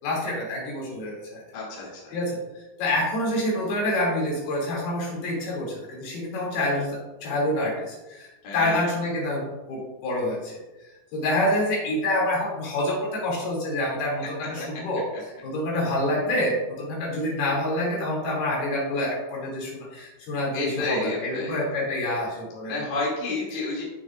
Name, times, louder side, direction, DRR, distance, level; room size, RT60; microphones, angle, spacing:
voice 1, 0.0-1.4 2.1-10.6 11.1-15.0 15.4-22.8, left 1 dB, 80° left, -4 dB, 4.6 m, -27 dB
voice 2, 1.5-2.1 8.4-8.9 20.5-21.6 22.7-23.8, left 3 dB, 60° left, -5 dB, 3.9 m, -30 dB
14.5 x 6.7 x 2.4 m, 1.1 s
omnidirectional pair, 4.5 m